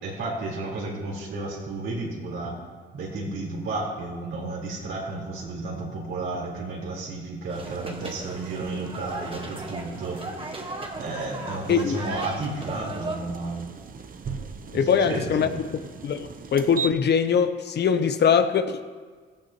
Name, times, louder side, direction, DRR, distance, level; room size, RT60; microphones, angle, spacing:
voice 1, 0.0-2.6 2.9-10.3 11.0-13.7 14.7-15.6, right 2 dB, 80° right, -4 dB, 4.2 m, -32 dB
sound 1, 7.5-13.2, right 2 dB, 25° right, 1.5 m, -37 dB
sound 2, 7.5-16.9, right 6 dB, 45° right, 0.8 m, -40 dB
voice 2, 14.7-15.5 16.0-18.8, left 7 dB, 60° left, 9 dB, 0.9 m, -22 dB
15.5 x 14.0 x 3.1 m, 1.5 s
cardioid pair, 90°, 20 cm